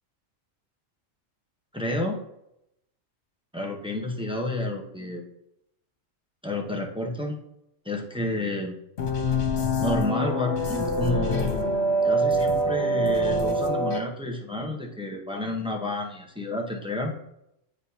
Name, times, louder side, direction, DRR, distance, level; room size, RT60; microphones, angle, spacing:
voice 1, 1.7-2.2 3.5-5.2 6.4-7.4 7.8-8.7 9.8-11.7 12.0-17.1, left 1 dB, 5° right, 0 dB, 0.7 m, -30 dB
sound 1, 9.0-14.0, equal, 60° left, 1.0 m, -25 dB
9.4 x 4.1 x 2.8 m, 0.81 s
omnidirectional pair, 1.4 m